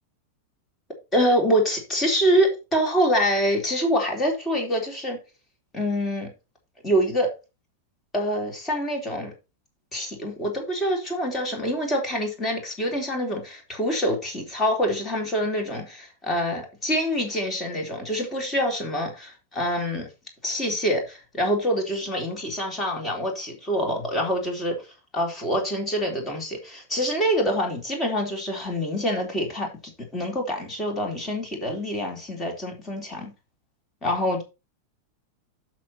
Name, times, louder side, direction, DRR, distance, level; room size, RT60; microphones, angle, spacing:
voice 1, 1.1-5.2 5.7-6.3 6.8-7.3 8.1-9.3 9.9-20.1 20.4-24.8 25.1-29.7 30.1-33.3 34.0-34.4, equal, 20° left, 3.7 m, -25 dB
7.6 x 6.3 x 4.5 m
figure-of-eight pair, 90°, 0 cm